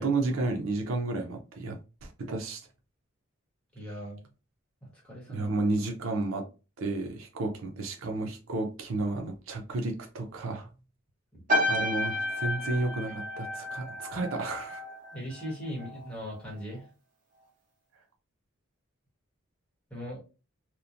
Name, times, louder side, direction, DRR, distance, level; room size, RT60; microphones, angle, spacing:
voice 1, 0.0-2.6 5.3-6.5 6.8-10.7 11.7-14.8, right 2 dB, 75° right, 0.6 m, -32 dB
voice 2, 3.7-4.2 5.0-5.5 11.3-11.4 15.1-16.9 19.9-20.2, equal, 5° left, 1.1 m, -39 dB
sound 1, 11.5-16.1 16.4-16.8, left 1 dB, 40° right, 0.8 m, -32 dB
3.0 x 2.1 x 2.5 m
head